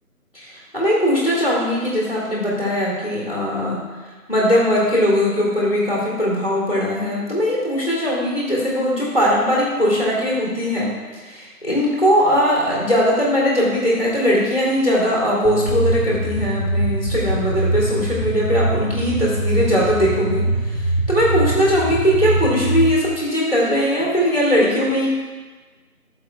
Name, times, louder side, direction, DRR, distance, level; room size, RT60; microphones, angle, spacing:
voice 1, 0.3-3.8 4.3-20.4 20.7-20.8 21.1-25.1, equal, 40° left, -6 dB, 2.1 m, -20 dB
sound 1, 15.4-22.8, right 1 dB, 65° left, 1.4 m, -23 dB
11.5 x 6.7 x 2.3 m, 1.3 s
figure-of-eight pair, 175°, 47 cm